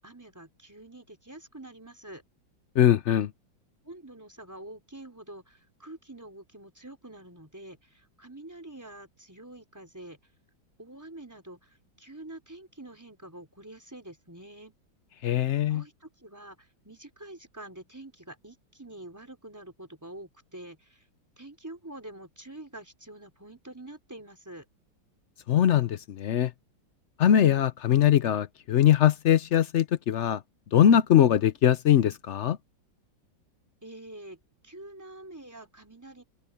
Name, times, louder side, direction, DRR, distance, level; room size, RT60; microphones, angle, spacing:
voice 1, 0.0-2.2 3.8-10.2 10.8-14.7 15.2-21.1 21.4-24.7 33.8-36.2, right 1 dB, 10° right, 4.1 m, -46 dB
voice 2, 2.8-3.3 15.2-15.8 25.5-26.5 27.2-30.4 30.7-32.6, left 10 dB, 75° left, 0.6 m, -21 dB
open air
omnidirectional pair, 2.0 m